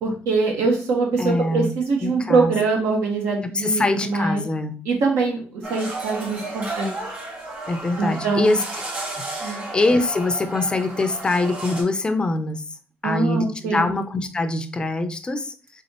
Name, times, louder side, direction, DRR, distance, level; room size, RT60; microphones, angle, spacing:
voice 1, 0.0-4.4 4.8-6.9 8.0-8.6 9.4-9.6 13.0-13.9, right 4 dB, 85° right, 0 dB, 1.5 m, -23 dB
voice 2, 1.2-1.7 2.0-2.5 3.4-4.8 7.7-8.6 9.2-12.6 13.0-15.8, left 2 dB, 20° left, 9 dB, 0.4 m, -24 dB
sound 1, 5.6-11.8, right 2 dB, 45° right, 2.0 m, -33 dB
4.1 x 3.6 x 2.9 m, 0.42 s
cardioid pair, 125°, 4 cm